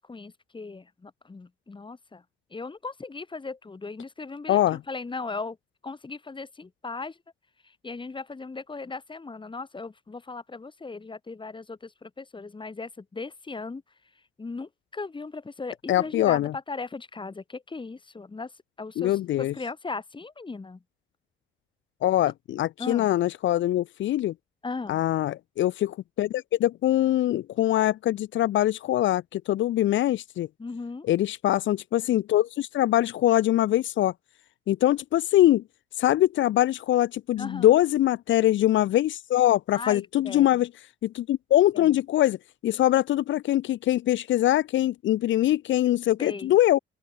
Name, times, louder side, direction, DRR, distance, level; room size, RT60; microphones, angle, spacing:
voice 1, 0.0-2.2 2.5-5.6 5.8-7.2 7.6-13.8 14.4-18.5 18.8-20.8 22.8-23.1 24.6-25.0 30.6-31.1 37.4-37.8 39.7-40.6 41.7-41.9 46.2-46.5, left 3 dB, 25° left, 3.2 m, -37 dB
voice 2, 15.9-16.5 19.0-19.5 22.0-24.3 24.9-30.5 31.1-34.1 34.7-35.6 36.0-40.7 41.0-42.4 42.6-46.8, left 13 dB, 75° left, 0.9 m, -23 dB
open air
cardioid pair, 90°, 20 cm